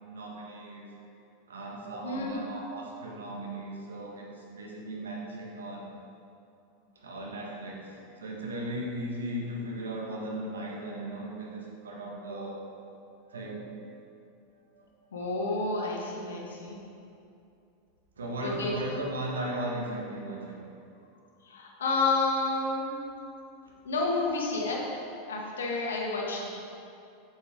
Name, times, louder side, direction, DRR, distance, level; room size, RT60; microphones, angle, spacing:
voice 1, 0.1-0.9 1.5-5.9 6.9-12.6 13.3-13.7 14.7-14.9 18.2-20.7 23.6-23.7, right 1 dB, 75° right, -2 dB, 1.5 m, -37 dB
voice 2, 2.0-2.4 15.1-16.8 18.4-18.7 21.4-22.9 23.8-24.8 25.3-26.5, left 3 dB, 75° left, -2 dB, 1.5 m, -30 dB
8.1 x 7.6 x 3.8 m, 2.6 s
figure-of-eight pair, 90°, 0 cm